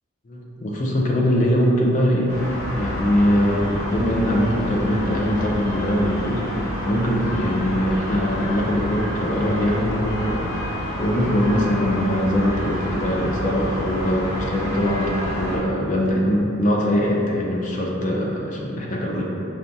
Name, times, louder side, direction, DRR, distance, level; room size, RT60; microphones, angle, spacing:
voice 1, 0.3-2.4 2.7-6.4 6.8-19.2, equal, 35° left, -2 dB, 0.4 m, -22 dB
sound 1, 2.3-15.6, equal, 90° left, 0.8 m, -29 dB
4.9 x 2.2 x 2.7 m, 2.8 s
head